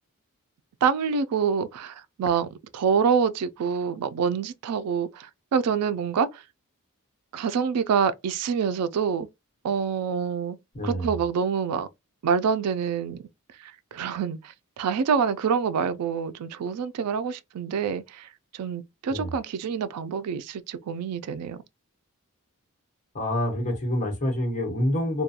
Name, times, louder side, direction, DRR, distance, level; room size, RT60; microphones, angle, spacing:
voice 1, 0.8-6.4 7.3-9.3 9.6-10.6 10.8-11.9 12.2-13.2 13.6-21.6, right 6 dB, 90° right, 0.4 m, -26 dB
voice 2, 10.7-11.1 19.1-19.3 23.1-25.2, left 1 dB, 35° left, 1.0 m, -27 dB
2.4 x 2.2 x 2.7 m
head